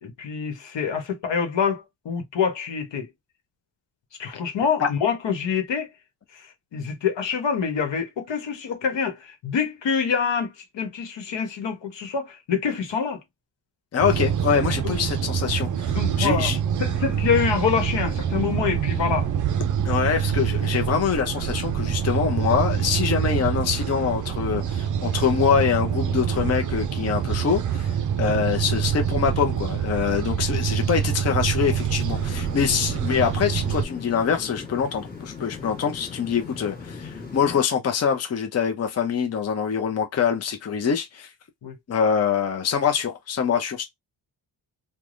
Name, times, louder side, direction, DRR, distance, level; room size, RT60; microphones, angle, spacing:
voice 1, 0.0-3.1 4.2-5.9 6.3-13.2 14.8-14.9 15.9-16.5 16.8-19.3 37.4-37.5 41.6-41.7, left 6 dB, 75° left, 1.1 m, -26 dB
voice 2, 13.9-16.6 19.8-41.3 41.9-43.8, left 7 dB, 35° left, 0.6 m, -24 dB
sound 1, 14.0-33.9, right 8 dB, 45° right, 0.4 m, -25 dB
sound 2, 32.1-37.6, left 4 dB, 20° left, 1.4 m, -38 dB
3.3 x 2.2 x 2.5 m
wide cardioid pair, 135°, 44 cm